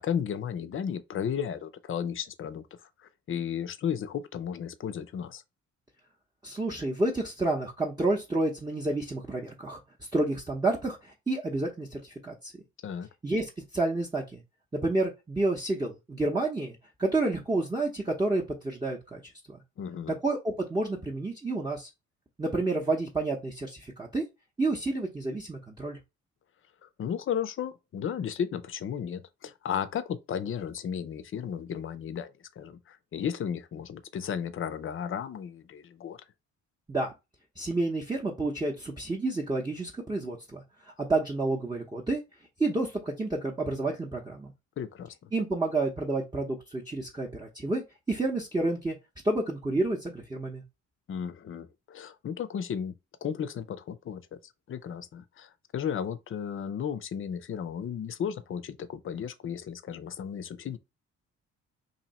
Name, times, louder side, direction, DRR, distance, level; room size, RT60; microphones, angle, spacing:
voice 1, 0.0-2.6 3.3-5.4 12.8-13.1 19.8-20.1 26.8-36.2 44.8-45.3 51.1-52.9 53.2-54.2 54.7-60.8, left 8 dB, 45° left, 0.5 m, -34 dB
voice 2, 6.4-9.8 10.1-12.5 13.2-14.4 14.7-19.2 19.5-19.6 20.2-21.9 22.4-24.2 24.6-26.0 36.9-37.1 37.6-40.6 40.9-42.2 42.6-44.5 45.3-49.0 49.2-50.6, right 2 dB, 15° right, 0.7 m, -30 dB
2.9 x 2.7 x 4.0 m
cardioid pair, 90°, 30 cm